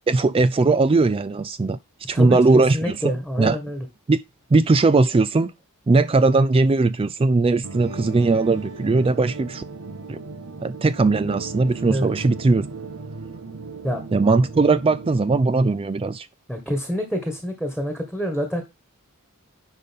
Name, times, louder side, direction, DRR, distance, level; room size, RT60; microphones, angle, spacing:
voice 1, 0.1-1.8 2.1-3.0 3.4-3.6 4.1-4.2 4.5-5.5 5.9-9.6 10.1-10.2 10.6-12.7 14.1-16.3, right 3 dB, 25° right, 0.4 m, -19 dB
voice 2, 2.1-3.8 11.9-12.1 13.8-14.0 16.5-18.6, equal, 5° right, 1.8 m, -27 dB
sound 1, 7.6-15.2, right 3 dB, 85° right, 1.4 m, -36 dB
10.5 x 5.4 x 3.6 m
head